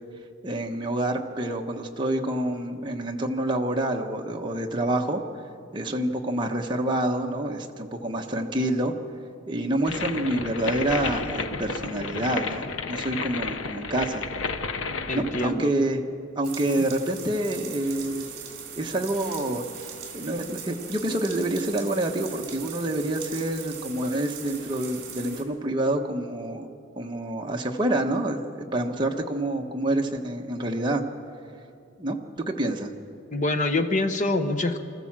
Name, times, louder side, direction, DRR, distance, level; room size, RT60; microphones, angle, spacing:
voice 1, 0.4-5.2 5.7-8.9 9.5-14.3 15.1-16.0 16.3-18.3 18.7-19.6 20.1-26.7 27.0-31.1 32.0-32.2 32.5-32.9, right 1 dB, 25° right, 1 dB, 1.3 m, -27 dB
sound 1, 9.8-15.5, left 4 dB, 90° left, 1.0 m, -31 dB
voice 2, 15.1-15.7 33.3-34.8, left 2 dB, 40° left, 8 dB, 1.1 m, -25 dB
sound 2, 16.4-25.4, right 7 dB, 50° right, 3.0 m, -40 dB
25.0 x 14.0 x 7.5 m, 2.5 s
head